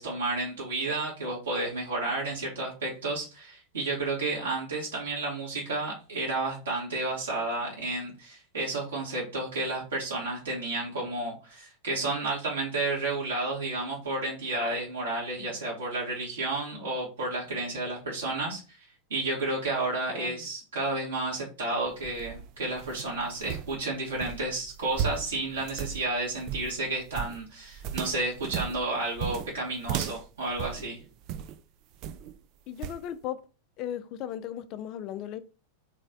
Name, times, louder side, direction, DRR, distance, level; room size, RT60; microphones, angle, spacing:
voice 1, 0.0-18.8 19.1-31.0, right 2 dB, 70° right, 1.5 m, -31 dB
voice 2, 20.1-20.4 32.7-33.5 33.8-35.4, left 10 dB, 40° left, 0.4 m, -37 dB
sound 1, 21.9-31.6 32.0-32.4 32.8-33.1, right 9 dB, 40° right, 0.3 m, -36 dB
3.3 x 3.2 x 3.9 m
figure-of-eight pair, 90°, 0 cm